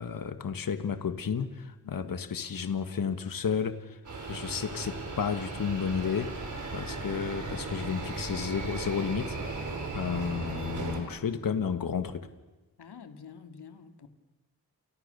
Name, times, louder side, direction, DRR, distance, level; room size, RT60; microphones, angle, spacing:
voice 1, 0.0-4.0 4.3-6.3 6.7-9.7 9.9-12.3, left 6 dB, 60° left, 9 dB, 1.7 m, -32 dB
voice 2, 1.8-2.2 12.8-14.1, left 6 dB, 80° left, 7 dB, 2.5 m, -48 dB
sound 1, 4.0-11.0, right 3 dB, 50° right, 6.2 m, -37 dB
29.5 x 28.5 x 7.0 m, 1.1 s
wide cardioid pair, 125°, 39 cm